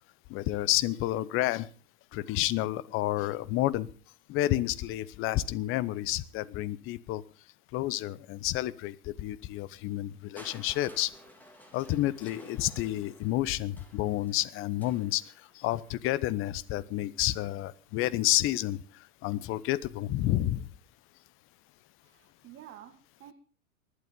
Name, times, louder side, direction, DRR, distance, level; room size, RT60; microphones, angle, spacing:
voice 1, 0.3-1.7 2.1-3.9 4.3-7.2 7.7-11.1 11.7-15.2 15.6-18.8 19.2-20.7, left 15 dB, 30° left, 19 dB, 0.9 m, -30 dB
Crushing, 10.4-16.3 17.2-17.3, equal, 5° left, 3.2 m, -54 dB
voice 2, 22.0-23.3, right 11 dB, 25° right, 6 dB, 1.9 m, -50 dB
19.5 x 12.0 x 5.3 m, 0.40 s
hypercardioid pair, 110°, 43 cm